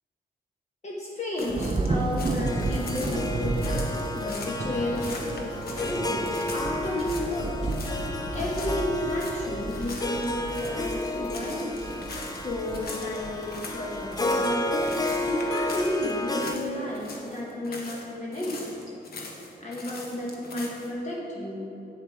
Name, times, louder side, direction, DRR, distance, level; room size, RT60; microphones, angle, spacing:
voice 1, 0.8-7.6 8.1-12.1 12.4-18.8 19.6-21.6, left 1 dB, 45° left, -4 dB, 1.2 m, -32 dB
sound 1, 1.4-4.6 4.9-7.4 7.7-8.1 8.3-16.7 16.9-18.0 18.3-20.9, left 3 dB, 65° left, 1.2 m, -42 dB
Thunder / Rain, 1.5-17.1, right 2 dB, 30° right, 0.7 m, -34 dB
Harp, 2.5-16.5, left 1 dB, 25° left, 0.5 m, -32 dB
7.9 x 6.7 x 4.7 m, 3.0 s
cardioid pair, 105°, 17 cm